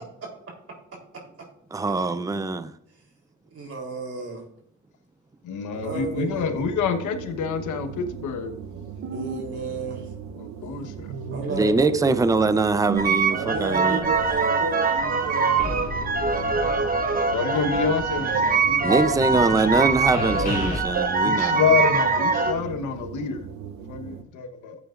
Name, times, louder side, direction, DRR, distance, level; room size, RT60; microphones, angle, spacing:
voice 1, 1.7-2.7 11.5-14.1 18.8-21.6, right 3 dB, 10° right, 0.6 m, -23 dB
voice 2, 3.5-4.4 5.8-6.4 9.1-10.1 11.3-12.1 13.3-15.7 17.6-17.7, right 3 dB, 50° right, 3.5 m, -32 dB
voice 3, 5.4-8.5 10.4-11.1 17.3-19.8 21.2-23.5 23.9-24.8, left 5 dB, 80° left, 1.2 m, -27 dB
sound 1, 5.7-24.2, right 8 dB, 65° right, 0.9 m, -35 dB
sound 2, 13.0-22.5, right 4 dB, 30° right, 1.1 m, -24 dB
sound 3, 15.6-17.3 17.5-20.8, left 2 dB, 30° left, 2.7 m, -34 dB
14.0 x 8.2 x 2.5 m
cardioid pair, 90°, 30 cm